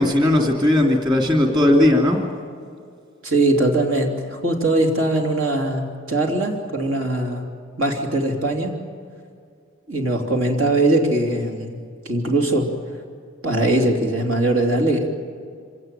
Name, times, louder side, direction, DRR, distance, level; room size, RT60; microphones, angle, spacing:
voice 1, 0.0-2.2, left 1 dB, 20° right, 2 dB, 2.7 m, -17 dB
voice 2, 3.2-7.4 7.8-8.8 9.9-11.8 12.0-12.7 13.4-15.1, right 2 dB, 75° right, 3 dB, 3.3 m, -21 dB
26.5 x 18.0 x 9.2 m, 2.3 s
head